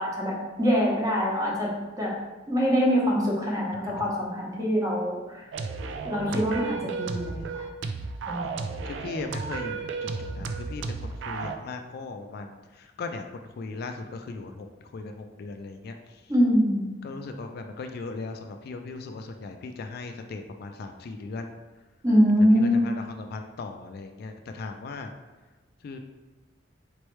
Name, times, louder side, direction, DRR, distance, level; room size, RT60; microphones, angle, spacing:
voice 1, 0.0-2.1 2.5-5.4 6.0-7.6 8.3-8.5 16.3-16.9 22.0-22.9, equal, 20° right, -4 dB, 0.9 m, -24 dB
sound 1, 5.5-11.6, right 4 dB, 70° right, 0.3 m, -33 dB
voice 2, 8.5-10.1 10.3-14.7 14.9-16.0 17.0-21.6 22.5-25.1 25.8-26.0, left 3 dB, 55° left, 5 dB, 0.3 m, -38 dB
4.3 x 3.1 x 3.1 m, 1.2 s
head